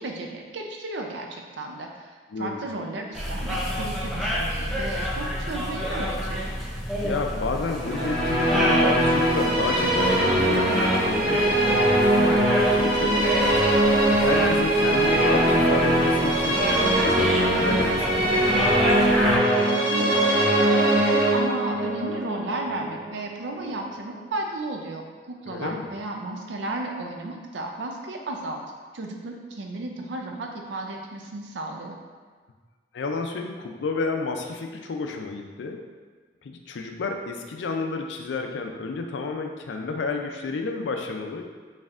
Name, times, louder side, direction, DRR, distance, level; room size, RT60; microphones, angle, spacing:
voice 1, 0.0-2.1 2.4-6.5 19.7-28.6 28.9-32.0, right 2 dB, 90° right, 2 dB, 0.5 m, -34 dB
voice 2, 2.3-2.7 7.0-11.7 12.1-18.4 25.5-25.9 32.9-35.8 36.4-41.4, left 3 dB, 90° left, 4 dB, 0.4 m, -31 dB
sound 1, 3.1-19.4, equal, ahead, 0.6 m, -30 dB
Musical instrument, 7.8-23.2, right 1 dB, 75° right, 1.4 m, -21 dB
4.2 x 3.3 x 2.4 m, 1.5 s
head